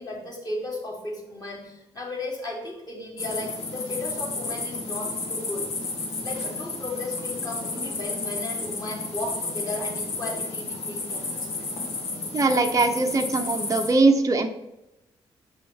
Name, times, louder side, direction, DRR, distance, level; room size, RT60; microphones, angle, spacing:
voice 1, 0.0-5.7 6.2-11.7, left 2 dB, 25° left, -1 dB, 2.6 m, -35 dB
sound 1, 3.2-13.9, left 3 dB, 50° left, 1.5 m, -32 dB
voice 2, 12.3-14.5, right 3 dB, 25° right, 4 dB, 0.8 m, -21 dB
6.5 x 5.4 x 4.4 m, 0.92 s
figure-of-eight pair, 40°, 14 cm